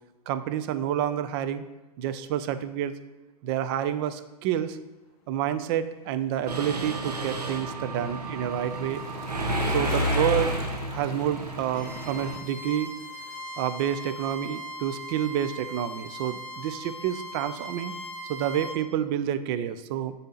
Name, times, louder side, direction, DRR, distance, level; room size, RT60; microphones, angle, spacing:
voice 1, 0.3-1.6 2.0-2.9 3.4-4.8 5.3-9.0 9.6-10.5 10.9-12.9 13.6-17.9 18.3-20.1, right 10 dB, 40° right, 12 dB, 0.4 m, -29 dB
Bicycle, 6.1-14.5 14.8-14.9, left 9 dB, 40° left, 0.5 m, -44 dB
Mechanisms, 6.5-12.4, right 1 dB, 90° right, 0.7 m, -30 dB
Bowed string instrument, 11.7-18.8, equal, 5° left, 0.8 m, -39 dB
6.8 x 2.8 x 5.2 m, 1.1 s
hypercardioid pair, 110°, 20 cm